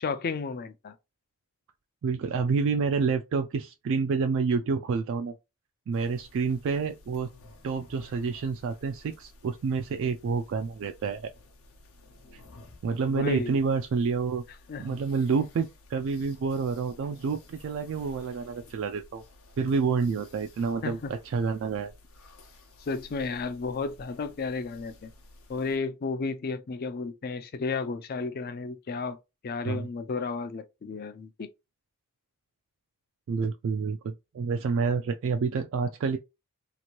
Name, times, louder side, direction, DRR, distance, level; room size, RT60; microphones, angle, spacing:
voice 1, 0.0-1.0 13.1-13.6 14.7-15.0 20.8-21.1 22.8-25.1 25.5-29.2 29.4-31.5, left 4 dB, 45° left, 0.4 m, -33 dB
voice 2, 2.0-5.3 5.9-7.3 7.6-11.3 12.3-12.4 12.8-14.4 14.8-19.2 19.6-21.9 29.7-29.9 33.3-36.2, right 5 dB, 60° right, 0.3 m, -28 dB
sound 1, 5.9-25.8, left 2 dB, 75° left, 0.8 m, -54 dB
2.9 x 2.5 x 2.9 m
head